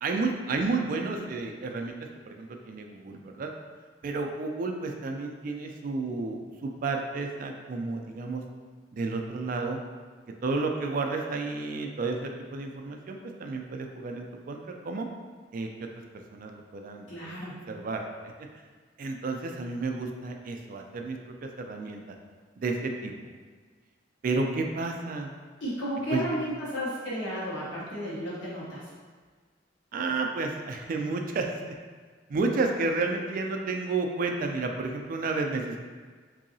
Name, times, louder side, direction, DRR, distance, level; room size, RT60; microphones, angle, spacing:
voice 1, 0.0-2.0 2.3-3.5 4.0-8.4 8.9-9.8 10.4-15.1 15.5-15.9 16.3-17.4 17.7-18.0 19.0-22.0 22.6-23.1 24.2-25.3 26.1-26.2 29.9-31.7 32.3-35.8, right 3 dB, 45° right, 3 dB, 0.3 m, -31 dB
voice 2, 17.1-17.7 25.6-28.9, equal, 75° left, -7 dB, 1.2 m, -33 dB
3.8 x 2.7 x 2.6 m, 1.5 s
head